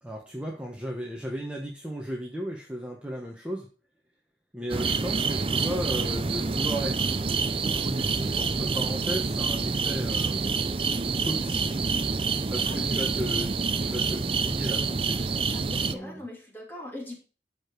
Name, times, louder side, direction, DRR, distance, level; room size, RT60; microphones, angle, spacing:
voice 1, 0.0-3.7 4.5-7.0 7.5-10.7 11.2-11.8 12.5-13.5 13.8-16.2, equal, 5° right, -1 dB, 1.3 m, -35 dB
sound 1, 4.7-15.9, right 4 dB, 30° right, 0.5 m, -27 dB
voice 2, 12.7-13.3 15.5-17.2, left 1 dB, 10° left, -1 dB, 2.9 m, -41 dB
13.0 x 5.2 x 4.7 m, 0.36 s
head